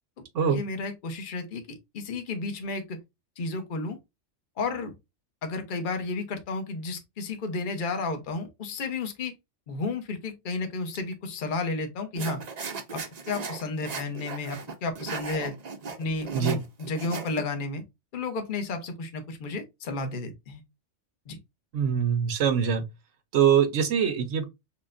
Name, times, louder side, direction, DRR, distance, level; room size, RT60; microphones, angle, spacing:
voice 1, 0.5-1.6 1.9-3.0 3.4-4.0 4.6-4.9 5.4-9.3 9.7-12.4 12.9-15.5 16.0-17.8 18.1-20.6 21.3-21.4, left 3 dB, 45° left, 0.9 m, -32 dB
sound 1, 12.2-17.4, right 5 dB, 45° right, 0.6 m, -36 dB
voice 2, 21.7-22.8 23.3-24.4, right 8 dB, 80° right, 1.1 m, -23 dB
5.8 x 2.2 x 2.5 m
omnidirectional pair, 1.3 m